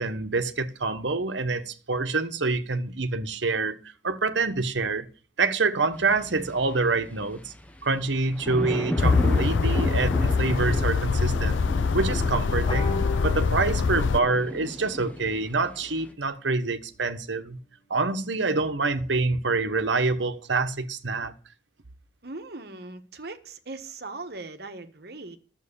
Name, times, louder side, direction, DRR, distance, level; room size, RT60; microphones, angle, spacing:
voice 1, 0.0-3.8 4.0-5.1 5.4-7.5 7.8-11.7 11.9-17.6 17.9-21.3, right 3 dB, 80° right, 1.2 m, -26 dB
sound 1, 5.9-16.1, equal, 5° left, 1.1 m, -36 dB
sound 2, 9.0-14.2, left 4 dB, 85° left, 0.5 m, -24 dB
sound 3, 12.7-17.6, left 2 dB, 30° left, 1.1 m, -44 dB
voice 2, 22.2-25.4, right 3 dB, 60° right, 1.4 m, -39 dB
11.5 x 7.8 x 6.9 m
head